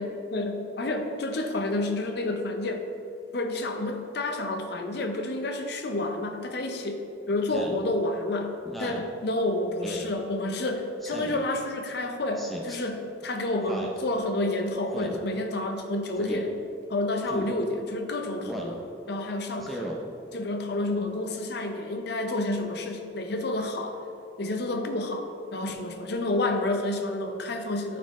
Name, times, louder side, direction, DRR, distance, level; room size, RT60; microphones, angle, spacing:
voice 1, 0.0-2.8 3.3-16.6 16.9-19.9 20.3-24.0 24.4-28.0, left 2 dB, 55° left, 5 dB, 0.6 m, -29 dB
Speech synthesizer, 7.5-7.8 8.6-9.1 9.8-10.1 11.0-11.5 12.4-12.8 13.7-14.0 14.9-15.2 16.2-16.4 17.3-17.5 18.4-18.8 19.6-20.0, right 1 dB, ahead, 0.5 m, -36 dB
11.0 x 4.3 x 3.1 m, 2.8 s
head